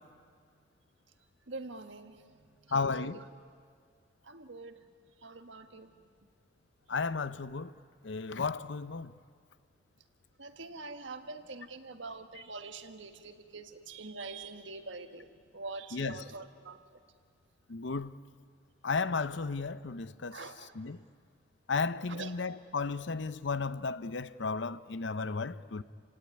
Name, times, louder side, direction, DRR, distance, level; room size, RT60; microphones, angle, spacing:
voice 1, 1.5-3.2 4.2-4.8 5.2-5.9 10.4-15.3 15.5-16.8 20.3-20.7 22.1-22.3, right 3 dB, 70° right, 1.6 m, -44 dB
voice 2, 2.7-3.2 6.9-7.7 8.0-9.1 15.9-16.2 17.7-18.2 18.8-20.4 20.7-21.0 21.7-25.8, left 4 dB, 70° left, 0.7 m, -34 dB
29.5 x 17.0 x 9.6 m
head